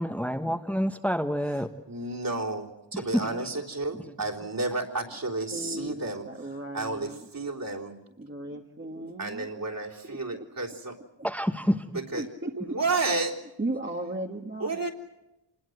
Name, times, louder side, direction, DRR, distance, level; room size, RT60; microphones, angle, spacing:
voice 1, 0.0-1.7 2.9-3.5 4.0-4.9 11.2-12.0 12.8-12.9, equal, 5° left, 5 dB, 1.3 m, -29 dB
voice 2, 1.9-2.7 2.9-6.2 6.7-7.1 7.3-7.9 9.2-11.0 12.1-12.2 12.7-13.3 14.6-14.9, right 3 dB, 50° right, -1 dB, 3.6 m, -31 dB
voice 3, 5.5-7.3 8.2-9.5 10.0-10.5 12.1-12.8 13.6-14.8, right 1 dB, 25° right, 1 dB, 1.6 m, -36 dB
27.0 x 20.5 x 7.9 m, 0.95 s
wide cardioid pair, 60°, 44 cm